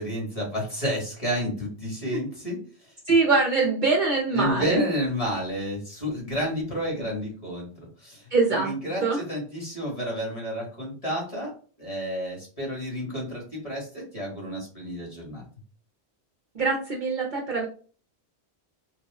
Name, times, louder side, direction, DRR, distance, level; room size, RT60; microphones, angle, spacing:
voice 1, 0.0-2.6 2.8-2.9 4.3-9.0 9.3-11.5 11.8-15.4, equal, 30° left, -3 dB, 1.7 m, -30 dB
voice 2, 3.1-4.8 8.3-8.7 9.0-9.2 16.5-17.7, right 3 dB, 50° right, -1 dB, 0.8 m, -23 dB
3.5 x 2.2 x 3.4 m, 0.40 s
omnidirectional pair, 1.1 m